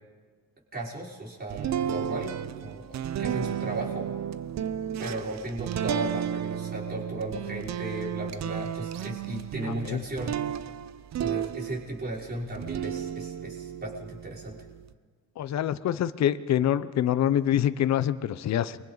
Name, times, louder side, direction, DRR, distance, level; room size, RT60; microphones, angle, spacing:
voice 1, 0.7-4.1 5.0-10.4 11.2-14.6, right 1 dB, 30° right, -4 dB, 5.4 m, -36 dB
sound 1, 1.5-12.1 12.5-14.9, right 9 dB, 65° right, 0.8 m, -33 dB
voice 2, 9.6-10.0 15.4-18.8, left 10 dB, 60° left, 13 dB, 0.8 m, -26 dB
29.5 x 23.0 x 4.1 m, 1.5 s
cardioid pair, 90°, 30 cm